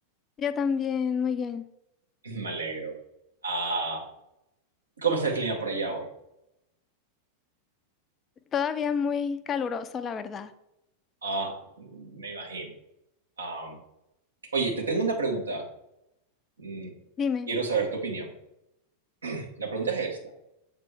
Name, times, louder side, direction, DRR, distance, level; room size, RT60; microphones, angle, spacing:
voice 1, 0.4-1.6 8.5-10.5 17.2-17.5, left 6 dB, 25° left, 11 dB, 0.4 m, -28 dB
voice 2, 2.2-2.9 3.4-4.0 5.0-6.1 11.2-12.7 13.4-13.8 14.5-15.6 16.6-16.9 17.5-18.3 19.2-20.2, right 4 dB, 75° right, 0 dB, 1.3 m, -30 dB
7.2 x 3.7 x 3.5 m, 0.86 s
figure-of-eight pair, 90°, 0 cm